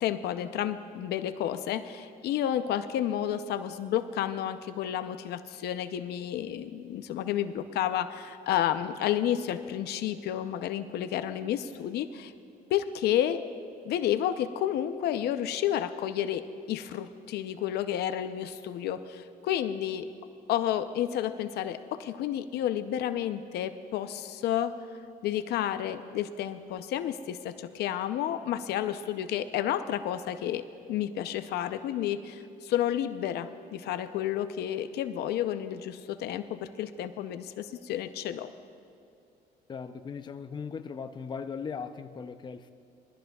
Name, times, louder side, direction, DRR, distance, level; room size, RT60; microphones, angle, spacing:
voice 1, 0.0-12.3 12.7-13.4 13.8-16.4 16.7-20.1 20.5-24.7 25.2-38.5, left 11 dB, 75° left, 10 dB, 0.6 m, -31 dB
voice 2, 39.7-42.7, left 6 dB, 25° left, 8 dB, 0.6 m, -38 dB
21.5 x 14.5 x 2.3 m, 2.5 s
cardioid pair, 110°, 17 cm